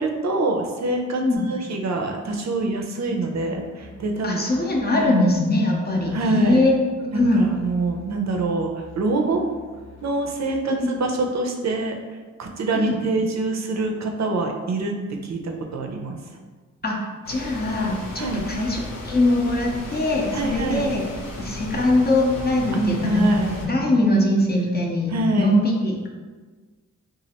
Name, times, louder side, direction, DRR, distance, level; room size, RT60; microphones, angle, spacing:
voice 1, 0.0-1.2 1.5-4.4 5.0-5.3 6.1-6.7 7.1-9.4 10.0-12.0 12.4-15.0 15.2-16.2 18.2-18.5 20.3-20.9 22.7-23.7 25.1-25.5, right 2 dB, 60° right, 3 dB, 0.5 m, -25 dB
Musical instrument, 3.3-10.9, left 4 dB, 55° left, 0.8 m, -47 dB
voice 2, 4.2-7.5 10.8-10.9 12.7-13.0 16.8-17.0 17.3-21.0 21.4-23.3 23.6-26.1, left 1 dB, 30° left, -1 dB, 0.6 m, -22 dB
sound 1, 17.2-23.7, left 2 dB, 85° left, 0.7 m, -35 dB
3.0 x 2.4 x 2.8 m, 1.4 s
cardioid pair, 60°, 32 cm